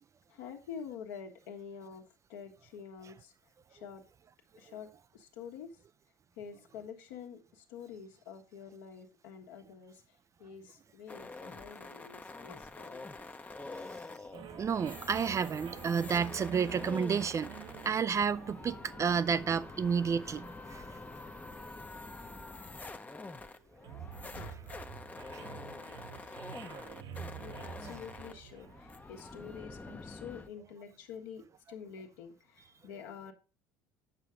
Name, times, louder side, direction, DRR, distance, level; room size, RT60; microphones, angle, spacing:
voice 1, 0.3-3.3 3.7-4.0 4.6-5.7 6.4-10.0 10.4-13.0 24.3-24.9 25.3-26.2 26.5-27.0 27.4-33.3, left 7 dB, 70° left, 1.4 m, -48 dB
sound 1, 11.1-30.5, left 3 dB, 15° left, 0.7 m, -47 dB
sound 2, 14.3-29.7, right 9 dB, 45° right, 0.8 m, -49 dB
voice 2, 14.6-17.5 17.8-21.0, right 6 dB, 25° right, 0.4 m, -31 dB
8.9 x 6.6 x 3.5 m
hypercardioid pair, 70°, 11 cm